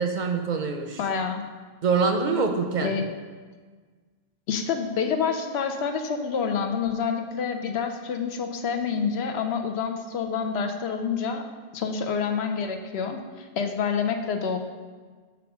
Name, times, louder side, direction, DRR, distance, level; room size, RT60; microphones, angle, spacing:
voice 1, 0.0-1.0 1.8-2.9, right 5 dB, 55° right, 5 dB, 0.6 m, -24 dB
voice 2, 1.0-1.4 2.8-3.0 4.5-11.4 11.7-14.6, left 6 dB, 80° left, 6 dB, 0.9 m, -27 dB
6.1 x 3.6 x 5.9 m, 1.5 s
omnidirectional pair, 1.1 m